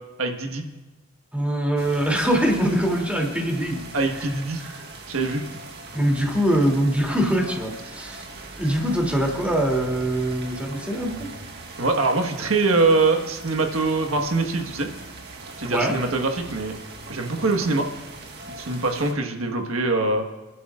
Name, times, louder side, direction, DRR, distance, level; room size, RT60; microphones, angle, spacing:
voice 1, 0.2-0.6 3.9-4.6 5.1-5.4 11.8-14.9 15.6-16.7 17.1-17.9 18.5-20.2, right 3 dB, 75° right, 4 dB, 1.5 m, -23 dB
voice 2, 1.3-3.8 4.6-4.8 5.2-5.3 5.9-8.3 8.6-11.3 15.7-16.0, right 1 dB, 5° right, -1 dB, 2.9 m, -23 dB
sound 1, 1.8-19.1, right 2 dB, 50° right, 1.6 m, -40 dB
29.5 x 11.0 x 2.5 m, 1.2 s
head